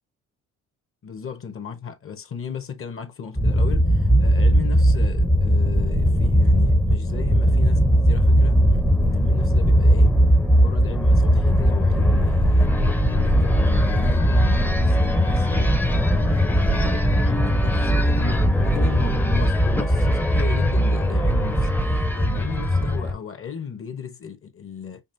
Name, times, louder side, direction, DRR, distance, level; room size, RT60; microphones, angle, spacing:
voice 1, 1.0-10.1 10.5-12.7 13.0-25.0, left 7 dB, 45° left, 1.0 m, -35 dB
sound 1, 3.4-23.1, equal, 5° left, 0.6 m, -19 dB
5.2 x 2.4 x 2.6 m
cardioid pair, 90°, 30 cm